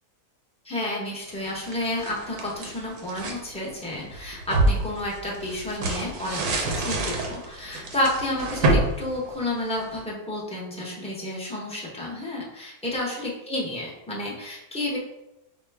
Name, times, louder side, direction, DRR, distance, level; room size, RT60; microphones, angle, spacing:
voice 1, 0.6-15.0, left 1 dB, 5° left, -5 dB, 0.5 m, -31 dB
sound 1, 1.4-3.4 3.9-10.0, right 2 dB, 75° right, 1.2 m, -27 dB
5.0 x 2.2 x 3.4 m, 0.92 s
omnidirectional pair, 1.7 m